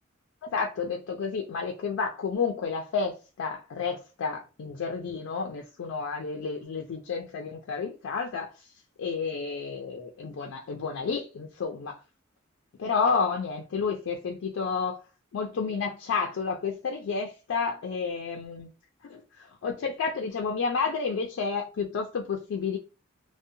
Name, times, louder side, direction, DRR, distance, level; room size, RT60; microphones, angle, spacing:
voice 1, 0.4-8.7 9.0-12.0 12.8-15.0 15.3-18.7 19.0-22.8, left 5 dB, 70° left, 0.4 m, -31 dB
2.6 x 2.0 x 2.6 m
head